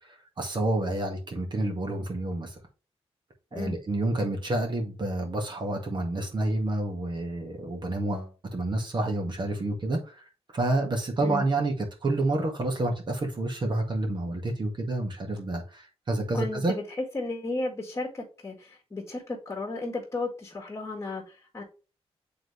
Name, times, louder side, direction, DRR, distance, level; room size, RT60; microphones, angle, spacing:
voice 1, 0.4-2.6 3.5-10.2 10.5-11.7 12.0-16.8, right 2 dB, 45° right, 1.9 m, -29 dB
voice 2, 16.3-21.6, left 2 dB, 25° left, 1.8 m, -34 dB
7.7 x 3.8 x 3.3 m
cardioid pair, 85°, 11 cm